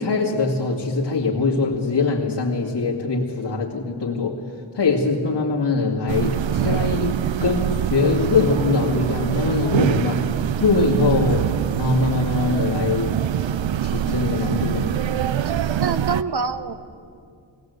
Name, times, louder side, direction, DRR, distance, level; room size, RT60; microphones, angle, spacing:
voice 1, 0.0-4.4 4.7-10.2 10.6-11.4 11.8-13.1 13.8-14.9, left 3 dB, 65° left, -6 dB, 2.3 m, -22 dB
sound 1, 6.1-16.2, right 10 dB, 90° right, 0.6 m, -24 dB
voice 2, 10.8-11.1 15.4-15.5 15.8-16.7, right 5 dB, 60° right, 11 dB, 1.1 m, -26 dB
20.0 x 18.5 x 8.1 m, 2.4 s
wide cardioid pair, 80°, 44 cm